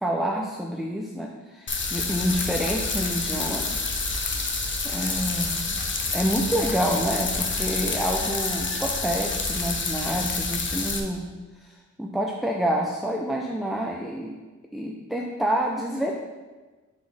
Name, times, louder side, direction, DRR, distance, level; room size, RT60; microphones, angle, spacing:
voice 1, 0.0-3.9 4.8-5.8 6.1-11.3 11.6-14.4 14.7-16.1, equal, ahead, 1 dB, 0.3 m, -28 dB
sound 1, 1.7-11.0, left 3 dB, 40° left, 0.6 m, -28 dB
6.9 x 4.2 x 3.3 m, 1.3 s
wide cardioid pair, 150°, 30 cm